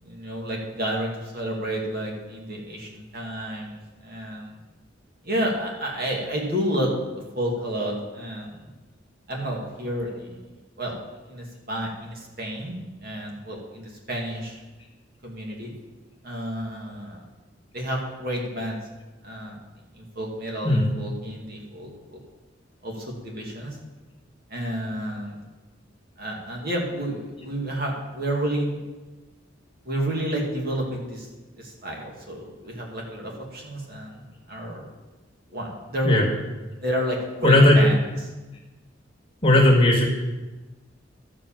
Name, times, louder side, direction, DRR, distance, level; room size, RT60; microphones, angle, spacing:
voice 1, 0.0-4.6 5.2-8.6 9.3-10.4 10.8-11.0 11.3-14.6 15.2-15.7 16.2-17.2 17.7-18.8 19.2-19.6 19.9-22.2 22.8-23.8 24.5-25.4 26.2-28.8 29.8-31.3 31.6-34.2 34.5-34.9 35.5-36.3 36.8-38.0, equal, 50° right, -1 dB, 2.2 m, -30 dB
voice 2, 37.4-37.8 39.4-40.1, left 1 dB, 30° left, -2 dB, 1.9 m, -16 dB
12.5 x 5.0 x 7.3 m, 1.2 s
head